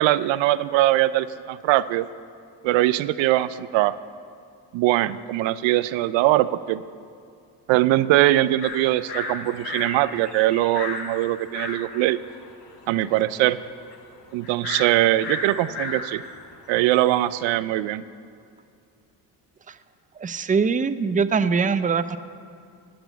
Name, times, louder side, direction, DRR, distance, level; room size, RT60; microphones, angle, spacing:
voice 1, 0.0-2.1 2.6-4.0 4.7-6.8 7.7-12.2 12.9-13.6 14.3-16.2 16.7-18.0, right 15 dB, 85° right, 15 dB, 0.5 m, -21 dB
sound 1, 8.6-17.4, left 4 dB, 65° left, 2.4 m, -35 dB
voice 2, 20.2-22.2, right 5 dB, 20° right, 12 dB, 0.5 m, -22 dB
15.0 x 6.1 x 9.1 m, 2.4 s
supercardioid pair, 70°, 44 cm